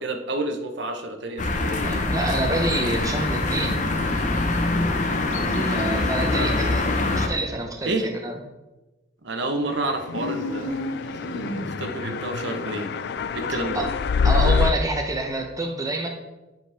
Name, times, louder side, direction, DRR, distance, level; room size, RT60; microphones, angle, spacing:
voice 1, 0.0-1.8 5.3-6.7 7.9-8.1 9.2-12.9 13.3-13.8, right 2 dB, 60° right, 5 dB, 0.8 m, -30 dB
sound 1, 1.4-7.3, left 2 dB, 40° left, 0.8 m, -24 dB
voice 2, 1.8-3.8 5.7-8.4 13.7-13.9 14.2-16.1, right 2 dB, 15° right, 3 dB, 0.6 m, -27 dB
sound 2, 10.1-12.0, left 1 dB, 70° left, 1.1 m, -31 dB
sound 3, 10.3-14.7, left 5 dB, 55° left, 0.3 m, -25 dB
9.8 x 5.1 x 3.3 m, 1.1 s
head